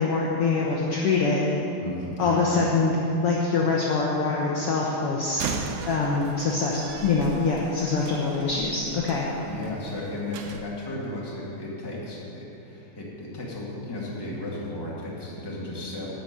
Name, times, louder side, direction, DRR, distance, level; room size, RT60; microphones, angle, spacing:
voice 1, 0.0-1.5 2.2-2.9 3.2-5.5 5.8-9.3, left 4 dB, 60° left, -3 dB, 1.6 m, -24 dB
voice 2, 1.8-2.7 9.4-16.1, left 1 dB, 10° left, -6 dB, 1.7 m, -34 dB
Slam, 5.3-10.6, right 5 dB, 85° right, 2.2 m, -37 dB
12.0 x 5.8 x 9.1 m, 2.9 s
omnidirectional pair, 3.6 m